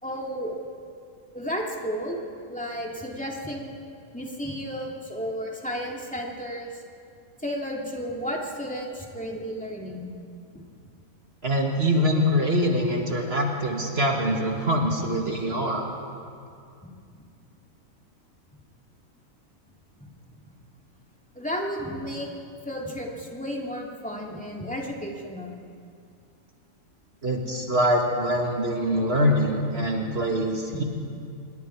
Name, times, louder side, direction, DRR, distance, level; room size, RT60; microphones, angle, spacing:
voice 1, 0.0-0.6 1.3-2.2 2.5-3.7 4.1-6.8 7.4-10.1 10.5-10.6 21.3-22.3 22.7-25.6, equal, 5° left, -2 dB, 2.6 m, -33 dB
voice 2, 11.4-15.9 27.2-30.8, equal, 45° right, 1 dB, 2.1 m, -24 dB
26.5 x 21.5 x 4.7 m, 2.4 s
omnidirectional pair, 1.5 m